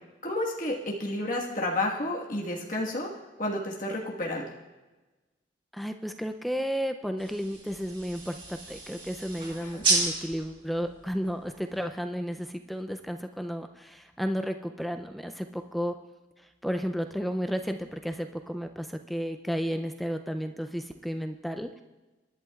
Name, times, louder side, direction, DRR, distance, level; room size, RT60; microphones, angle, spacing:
voice 1, 0.2-3.1 3.4-4.5 9.6-9.8, left 1 dB, 45° left, -3 dB, 1.4 m, -31 dB
voice 2, 5.7-16.0 16.6-21.8, equal, ahead, 7 dB, 0.4 m, -33 dB
sound 1, 7.2-12.0, right 3 dB, 25° right, 2.2 m, -33 dB
27.0 x 11.0 x 2.4 m, 1.2 s
head